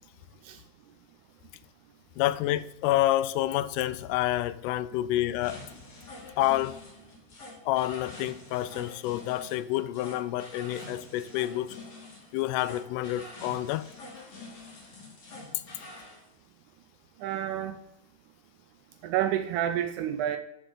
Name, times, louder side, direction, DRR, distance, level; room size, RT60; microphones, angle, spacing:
voice 1, 2.2-5.6 6.4-6.8 7.7-11.8 12.3-13.9, left 14 dB, 90° left, 2.1 m, -28 dB
sound 1, 5.4-16.2, left 2 dB, 60° left, 3.7 m, -46 dB
voice 2, 17.2-17.8 19.0-20.4, right 11 dB, 80° right, 1.9 m, -29 dB
11.5 x 7.0 x 3.8 m
omnidirectional pair, 3.6 m